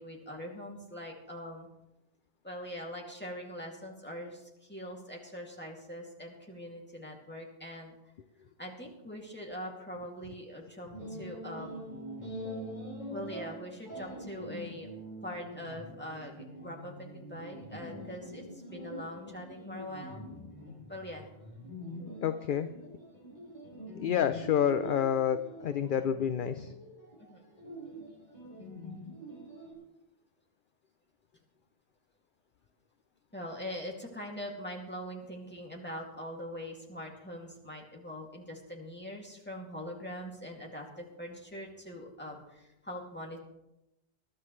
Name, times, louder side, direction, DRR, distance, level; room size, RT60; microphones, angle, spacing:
voice 1, 0.0-1.7 2.4-7.9 8.6-11.9 13.1-14.9 15.2-20.2 20.9-21.3 27.2-27.4 33.3-43.4, equal, 10° left, -1 dB, 2.4 m, -42 dB
sound 1, 10.9-29.7, equal, 45° left, 4.3 m, -45 dB
voice 2, 22.2-22.7 24.0-26.7, left 9 dB, 60° left, 11 dB, 0.7 m, -29 dB
20.5 x 12.0 x 3.2 m, 0.92 s
omnidirectional pair, 1.1 m